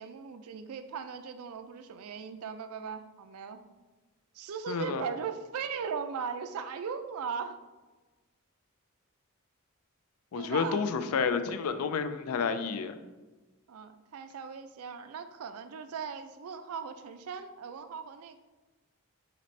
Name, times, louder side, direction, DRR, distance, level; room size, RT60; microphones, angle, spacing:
voice 1, 0.0-3.6 4.3-7.6 10.4-10.8 13.7-18.4, right 6 dB, 75° right, 10 dB, 0.4 m, -38 dB
voice 2, 4.7-5.0 10.3-13.0, left 5 dB, 75° left, 10 dB, 0.4 m, -30 dB
4.2 x 4.0 x 3.2 m, 1.2 s
head